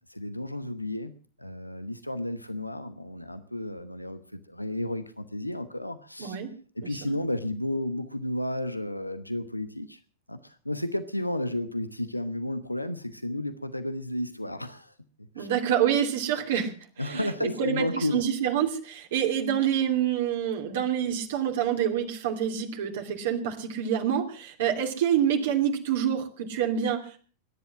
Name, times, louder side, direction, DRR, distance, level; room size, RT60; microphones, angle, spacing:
voice 1, 0.1-1.1 1.4-6.4 6.7-10.0 10.3-14.9 15.4-15.5 17.0-18.2, left 1 dB, 85° left, 11 dB, 1.0 m, -32 dB
voice 2, 6.2-6.5 6.8-6.9 15.3-27.2, right 9 dB, 55° right, 3 dB, 2.8 m, -27 dB
21.5 x 10.5 x 6.1 m, 0.41 s
figure-of-eight pair, 90°, 0 cm